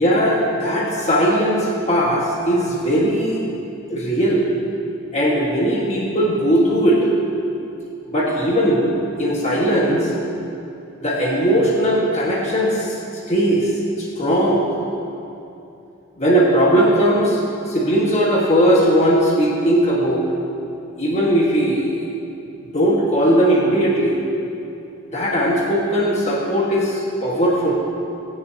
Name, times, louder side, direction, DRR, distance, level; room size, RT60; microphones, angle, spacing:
voice 1, 0.0-3.4 3.9-4.4 5.1-7.1 8.1-10.1 11.0-12.9 13.3-13.7 14.0-14.6 16.2-20.2 21.0-22.1 22.7-24.2 25.1-27.7, equal, 30° left, -4 dB, 1.6 m, -18 dB
20.5 x 10.5 x 2.8 m, 2.7 s
head